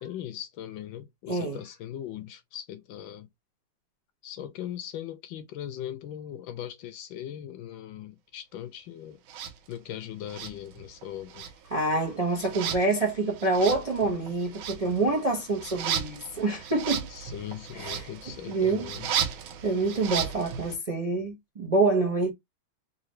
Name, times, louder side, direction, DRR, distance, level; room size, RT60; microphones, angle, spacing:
voice 1, 0.0-3.3 4.2-9.2 9.7-11.5 17.1-19.1, left 11 dB, 75° left, 1.3 m, -39 dB
voice 2, 1.3-1.6 11.7-17.1 17.7-18.1 18.5-18.9 19.6-22.3, right 3 dB, 35° right, 0.6 m, -26 dB
sound 1, 9.3-9.5 10.3-11.0 11.3-20.7, right 8 dB, 80° right, 1.6 m, -35 dB
3.7 x 3.1 x 3.1 m
omnidirectional pair, 2.3 m